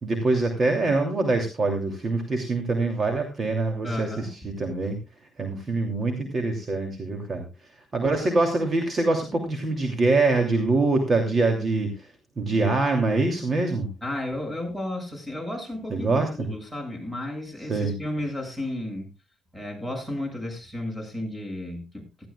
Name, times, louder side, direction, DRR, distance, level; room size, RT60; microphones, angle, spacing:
voice 1, 0.0-5.0 5.4-7.4 7.9-12.1 12.4-13.9 15.9-16.5 17.7-17.9, right 3 dB, 40° right, 2.9 m, -24 dB
voice 2, 3.8-4.5 14.0-19.1 19.5-22.3, left 1 dB, 10° right, 7.1 m, -33 dB
17.0 x 14.0 x 2.4 m
cardioid pair, 90°, 0 cm